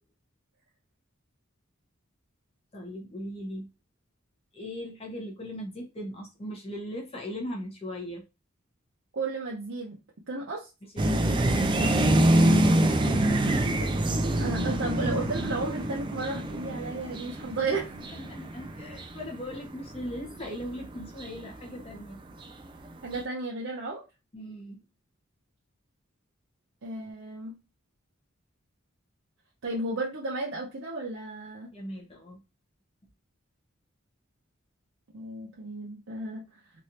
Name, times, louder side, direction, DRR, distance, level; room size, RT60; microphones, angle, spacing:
voice 1, 2.7-3.7 4.5-8.2 10.8-12.9 18.1-22.2 24.3-24.8 31.7-32.4, equal, 30° left, -1 dB, 0.9 m, -39 dB
voice 2, 9.1-10.0 10.3-10.7 13.8-18.0 23.0-24.0 26.8-27.5 29.6-31.7 35.1-36.5, right 3 dB, 65° right, -3 dB, 0.7 m, -34 dB
sound 1, 11.0-21.9 22.4-22.8 23.1-23.2, right 1 dB, 25° right, 0.3 m, -26 dB
3.1 x 2.6 x 2.7 m, 0.27 s
head